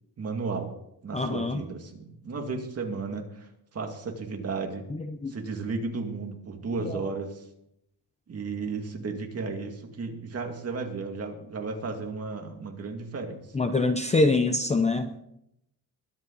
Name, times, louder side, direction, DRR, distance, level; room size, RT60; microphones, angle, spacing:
voice 1, 0.2-0.7 1.0-4.9 5.3-7.4 8.3-13.4, right 4 dB, 35° right, 3 dB, 2.3 m, -34 dB
voice 2, 1.1-1.6 5.2-5.3 6.8-7.0 13.5-15.2, left 3 dB, 15° left, 8 dB, 0.6 m, -24 dB
22.0 x 8.7 x 4.0 m, 0.77 s
cardioid pair, 160°, 41 cm